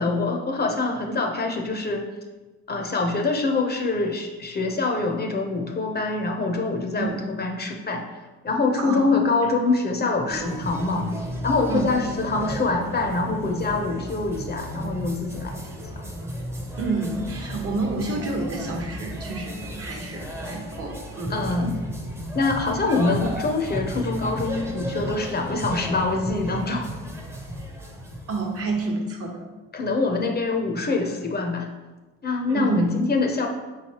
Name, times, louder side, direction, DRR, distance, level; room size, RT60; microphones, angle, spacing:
voice 1, 0.0-2.1 2.7-8.0 8.4-11.1 11.4-15.6 16.0-16.1 21.3-21.8 22.3-26.9 29.7-31.7 32.2-33.5, left 3 dB, 35° left, 2 dB, 0.6 m, -25 dB
voice 2, 8.8-9.1 11.7-12.0 16.8-21.4 28.3-29.5 32.5-32.9, right 3 dB, 50° right, 1 dB, 1.0 m, -29 dB
sound 1, 10.3-28.8, equal, 10° right, 0.6 m, -34 dB
5.0 x 3.2 x 2.9 m, 1.2 s
cardioid pair, 90°, 30 cm